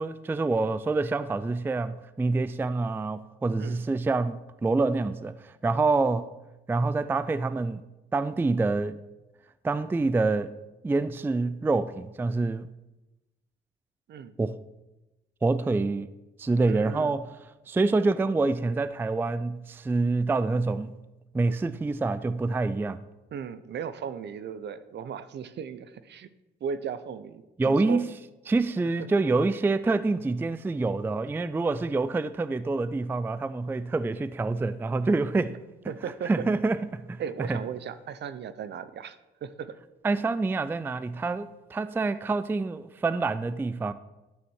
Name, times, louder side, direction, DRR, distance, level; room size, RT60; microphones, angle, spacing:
voice 1, 0.0-6.3 6.7-7.8 8.1-9.0 9.6-10.6 10.8-12.7 14.4-14.6 15.4-16.1 16.4-17.2 17.7-21.0 21.3-23.0 27.6-28.1 28.5-35.6 36.2-37.6 40.0-43.9, right 3 dB, 10° right, 0.3 m, -26 dB
voice 2, 16.7-17.2 23.3-26.3 26.6-28.0 35.9-36.3 37.2-39.8, right 7 dB, 60° right, 0.7 m, -36 dB
11.5 x 4.3 x 6.3 m
cardioid pair, 90°, 20 cm